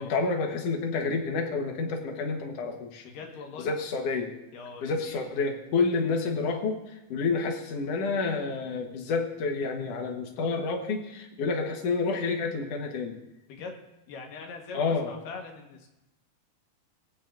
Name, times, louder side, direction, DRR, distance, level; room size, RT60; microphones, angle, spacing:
voice 1, 0.0-3.1 3.6-4.4 4.8-13.1 14.7-15.1, left 4 dB, 60° left, 4 dB, 1.8 m, -29 dB
voice 2, 3.0-3.7 4.5-5.3 13.5-13.8 14.1-15.9, left 4 dB, 75° left, 2 dB, 2.9 m, -42 dB
20.0 x 8.8 x 2.5 m, 0.91 s
omnidirectional pair, 4.0 m